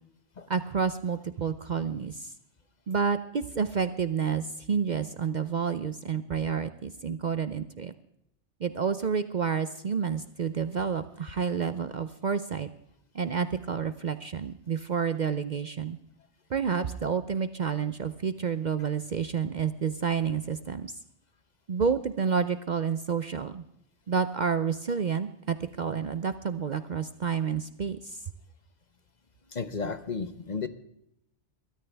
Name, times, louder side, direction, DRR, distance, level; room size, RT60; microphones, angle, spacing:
voice 1, 0.5-2.3 2.9-7.9 8.6-12.7 13.1-16.0 16.5-20.9 21.7-23.6 24.1-28.2, right 6 dB, 50° right, 11 dB, 0.6 m, -29 dB
voice 2, 29.5-30.7, left 4 dB, 40° left, 11 dB, 0.9 m, -33 dB
22.0 x 13.5 x 3.4 m, 0.78 s
omnidirectional pair, 1.2 m